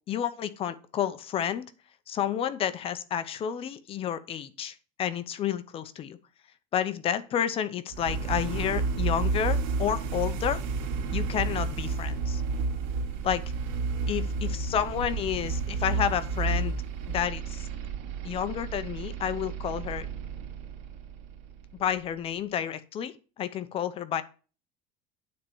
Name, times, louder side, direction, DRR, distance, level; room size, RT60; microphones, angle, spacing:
voice 1, 0.1-1.6 2.1-6.2 6.7-10.6 11.1-12.4 13.2-13.4 14.1-16.7 17.1-17.7 18.2-20.1 21.8-24.2, left 9 dB, 35° left, 14 dB, 0.7 m, -30 dB
sound 1, 7.9-21.8, right 4 dB, 70° right, 3.0 m, -31 dB
9.4 x 4.4 x 7.0 m, 0.37 s
cardioid pair, 145°, 16 cm